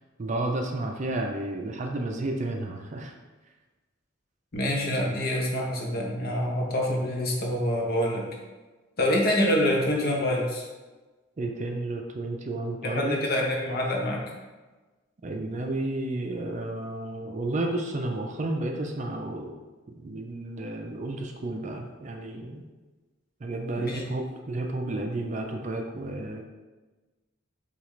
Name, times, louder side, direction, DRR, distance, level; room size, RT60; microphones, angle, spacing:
voice 1, 0.2-3.1 11.4-13.2 15.2-19.6 20.0-22.6 23.4-26.4, right 2 dB, 35° right, 3 dB, 0.4 m, -32 dB
voice 2, 4.5-8.3 9.0-10.6 12.8-14.2 23.8-24.1, left 1 dB, 45° left, -1 dB, 0.9 m, -26 dB
6.8 x 2.4 x 3.1 m, 1.2 s
head